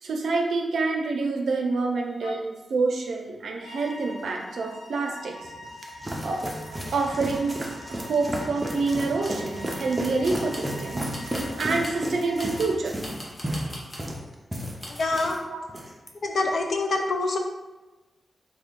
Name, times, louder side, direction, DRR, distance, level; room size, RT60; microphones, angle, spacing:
voice 1, 0.0-5.5 6.2-6.4 6.9-7.5 7.9-13.0 15.5-15.6, right 3 dB, 80° right, 1 dB, 0.5 m, -27 dB
sound 1, 3.6-12.8, left 1 dB, 80° left, 0.9 m, -43 dB
sound 2, 5.4-15.4 15.7-16.1, right 1 dB, 15° right, 0.4 m, -33 dB
sound 3, 9.2-9.5 10.2-10.7 11.1-12.0 12.4-14.1 14.8-15.2, equal, 25° left, 0.8 m, -41 dB
voice 2, 15.0-15.4 16.2-17.4, left 2 dB, 60° left, 3 dB, 0.5 m, -25 dB
3.6 x 2.2 x 3.6 m, 1.1 s
wide cardioid pair, 145°, 0 cm